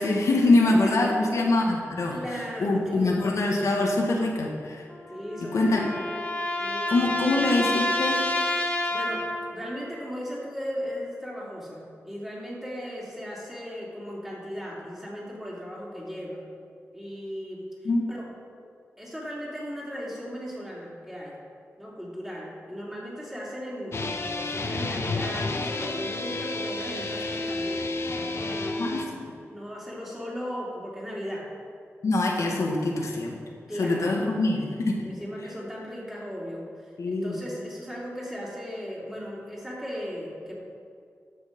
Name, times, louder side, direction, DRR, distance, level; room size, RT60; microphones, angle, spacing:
voice 1, 0.0-2.2 2.6-4.8 5.4-5.9 6.9-8.3 17.8-18.1 28.8-29.3 32.0-33.3 33.8-34.9 37.0-37.4, left 2 dB, 75° left, -1 dB, 1.4 m, -24 dB
voice 2, 0.5-1.1 2.1-3.3 5.1-5.9 6.6-7.1 8.7-16.4 16.9-17.6 18.1-18.3 19.0-21.4 21.8-27.9 28.2-29.0 29.5-31.5 33.7-34.4 35.0-40.5, equal, 5° right, -5 dB, 3.0 m, -37 dB
sound 1, 4.9-9.6, left 1 dB, 25° left, 1.8 m, -29 dB
sound 2, 23.9-29.0, left 2 dB, 55° left, 0.9 m, -31 dB
12.5 x 6.5 x 5.2 m, 2.3 s
wide cardioid pair, 90°, 5 cm